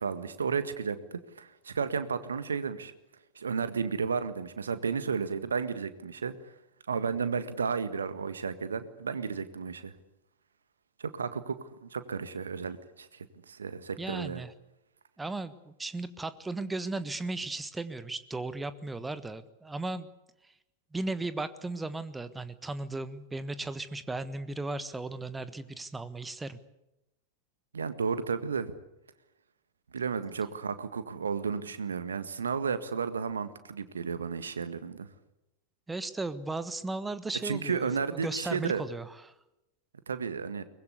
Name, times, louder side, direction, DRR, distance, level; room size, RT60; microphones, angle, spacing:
voice 1, 0.0-2.9 3.3-6.3 6.9-9.9 11.0-14.4 27.7-28.7 29.9-35.1 37.4-38.8 40.1-40.6, right 5 dB, 70° right, 12 dB, 1.7 m, -33 dB
voice 2, 14.0-14.5 15.2-20.1 20.9-26.6 35.9-39.3, right 2 dB, 10° right, 14 dB, 1.4 m, -36 dB
23.5 x 21.0 x 8.3 m, 0.90 s
figure-of-eight pair, 90°, 0 cm